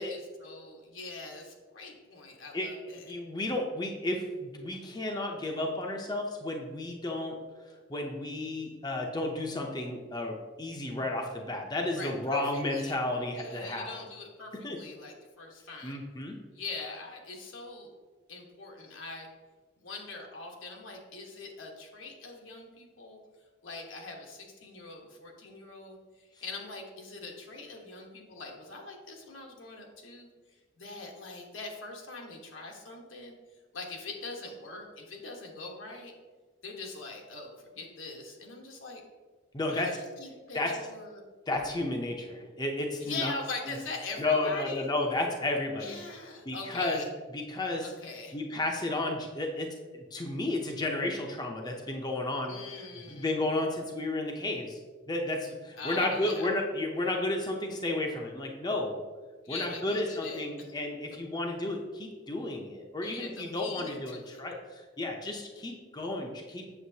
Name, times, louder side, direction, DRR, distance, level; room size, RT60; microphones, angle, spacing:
voice 1, 0.0-3.1 11.9-13.0 13.4-16.0 16.5-17.9 18.3-19.3 19.8-23.2 23.6-30.3 30.8-33.3 33.7-36.1 36.6-39.0 39.7-41.2 43.0-44.9 45.8-47.1 47.8-48.4 52.4-53.3 55.8-56.5 59.4-60.7 63.0-64.4, left 3 dB, 85° left, 0 dB, 1.3 m, -42 dB
voice 2, 3.1-7.4 7.9-14.0 14.6-14.8 15.8-16.4 39.5-40.0 40.5-40.8 41.5-43.3 43.7-43.8 44.2-46.0 46.5-47.0 47.3-47.9 48.3-52.6 53.1-54.8 55.1-59.0 59.5-66.7, left 2 dB, 20° left, 1 dB, 0.6 m, -32 dB
7.8 x 6.7 x 2.8 m, 1.4 s
head